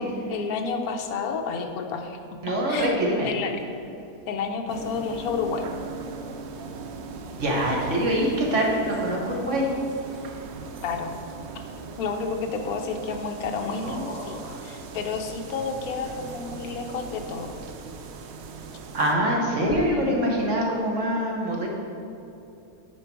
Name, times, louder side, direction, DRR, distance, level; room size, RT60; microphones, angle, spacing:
voice 1, 0.0-2.2 2.7-3.5 4.3-5.7 10.8-11.1 11.5-11.6 12.0-17.6 19.5-20.3, left 5 dB, 65° left, 4 dB, 1.1 m, -31 dB
voice 2, 2.4-3.3 7.4-9.7 13.7-14.6 18.9-21.7, equal, 50° right, -1 dB, 1.2 m, -25 dB
sound 1, 4.7-19.1, right 5 dB, 75° right, 0.6 m, -39 dB
9.8 x 4.6 x 4.6 m, 2.8 s
omnidirectional pair, 1.8 m